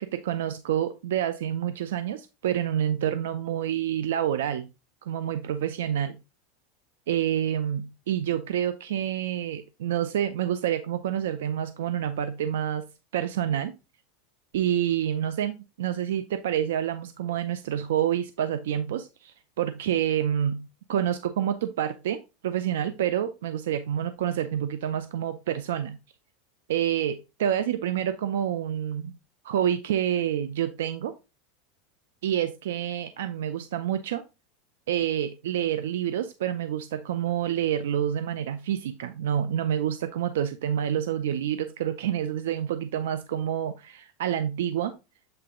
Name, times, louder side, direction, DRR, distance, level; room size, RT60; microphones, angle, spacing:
voice 1, 0.0-4.7 5.0-6.2 7.1-12.9 13.1-13.7 14.5-26.0 26.7-29.1 29.4-31.1 32.2-34.2 34.9-44.9, right 10 dB, 85° right, 10 dB, 0.5 m, -28 dB
7.8 x 3.4 x 3.7 m, 0.27 s
supercardioid pair, 135°, 0 cm